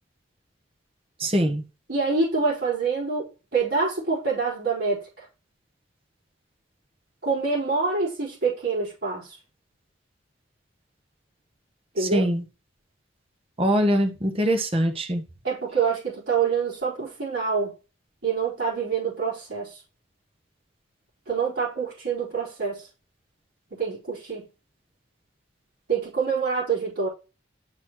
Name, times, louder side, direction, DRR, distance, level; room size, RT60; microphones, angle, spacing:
voice 1, 1.2-1.6 12.1-12.4 13.6-15.2, equal, 30° right, 1.1 m, -22 dB
voice 2, 1.9-5.3 7.2-9.4 11.9-12.3 15.4-17.7 18.2-19.8 21.3-22.9 23.7-24.5 25.9-27.1, right 5 dB, 65° right, 4.1 m, -26 dB
11.5 x 4.1 x 3.0 m
head